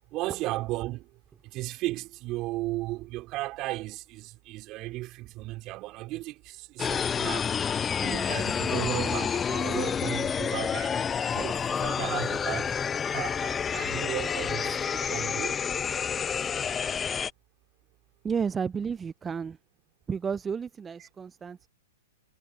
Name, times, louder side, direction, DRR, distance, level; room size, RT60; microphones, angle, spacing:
voice 1, 0.1-1.1 1.4-7.5 8.0-11.0 11.3-12.7 13.1-15.6, right 19 dB, 35° right, 4.2 m, -35 dB
sound 1, 6.8-17.3, left 7 dB, 20° left, 0.9 m, -29 dB
voice 2, 18.2-19.6 20.1-21.7, right 6 dB, 15° right, 0.6 m, -32 dB
hypercardioid pair, 115°, 0 cm